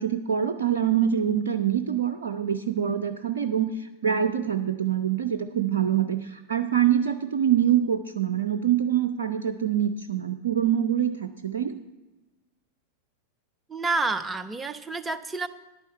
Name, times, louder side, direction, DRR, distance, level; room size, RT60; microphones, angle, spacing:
voice 1, 0.0-11.7, right 9 dB, 65° right, 7 dB, 0.4 m, -25 dB
voice 2, 13.7-15.5, right 3 dB, 10° right, 12 dB, 0.5 m, -29 dB
11.0 x 9.0 x 4.2 m, 1.1 s
figure-of-eight pair, 90°, 0 cm